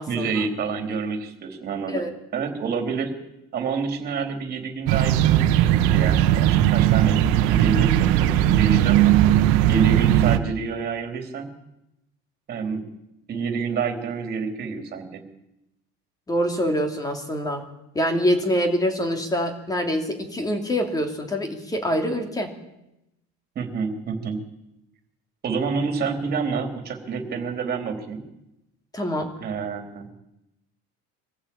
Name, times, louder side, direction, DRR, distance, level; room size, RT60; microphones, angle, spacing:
voice 1, 0.1-2.0 2.3-3.1 3.5-9.1 9.7-11.5 12.5-12.8 13.3-15.2 23.6-24.4 25.4-28.2 29.4-30.1, right 5 dB, 35° right, 5 dB, 3.5 m, -28 dB
sound 1, 4.9-10.4, right 12 dB, 85° right, 1.4 m, -18 dB
voice 2, 16.3-17.6 17.9-22.6 28.9-29.3, equal, 10° left, 5 dB, 2.7 m, -25 dB
23.5 x 15.0 x 8.7 m, 0.89 s
cardioid pair, 165°, 29 cm